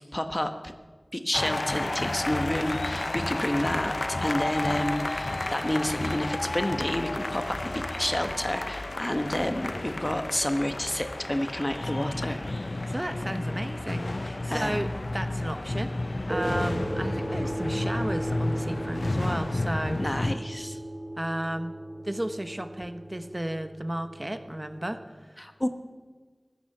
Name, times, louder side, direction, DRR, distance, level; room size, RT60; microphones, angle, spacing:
voice 1, 0.1-0.5 1.1-12.4 14.5-14.8 20.0-20.8 25.4-25.7, left 1 dB, 25° left, 8 dB, 1.2 m, -30 dB
sound 1, 1.3-20.4, left 2 dB, 65° left, 0.6 m, -31 dB
voice 2, 12.9-15.9 16.3-20.0 21.2-21.7 22.0-25.4, right 1 dB, 30° right, 8 dB, 1.0 m, -33 dB
sound 2, 16.3-25.0, right 1 dB, 50° right, 2.2 m, -36 dB
16.0 x 11.5 x 6.7 m, 1.4 s
wide cardioid pair, 45°, 0 cm